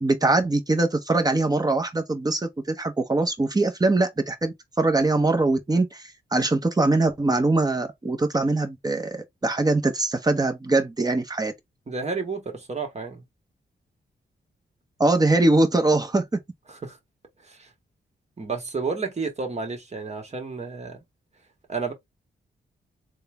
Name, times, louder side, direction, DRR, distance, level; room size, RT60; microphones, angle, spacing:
voice 1, 0.0-11.5 15.0-16.3, right 2 dB, 20° right, 0.9 m, -22 dB
voice 2, 11.9-13.2 16.7-17.0 17.4-17.7 18.4-21.0 21.7-21.9, right 4 dB, 35° right, 1.3 m, -31 dB
3.7 x 2.2 x 3.5 m
cardioid pair, 90°, 20 cm